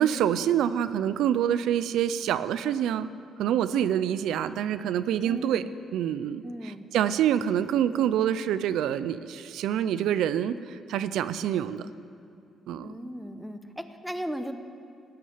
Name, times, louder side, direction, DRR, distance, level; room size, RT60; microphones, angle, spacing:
voice 1, 0.0-3.1 3.4-5.6 5.9-11.9 12.7-12.9, right 10 dB, 85° right, 13 dB, 0.4 m, -26 dB
voice 2, 5.2-5.7 6.4-6.8 12.8-14.5, equal, ahead, 8 dB, 0.9 m, -36 dB
16.0 x 6.2 x 9.5 m, 2.6 s
cardioid pair, 90°, 0 cm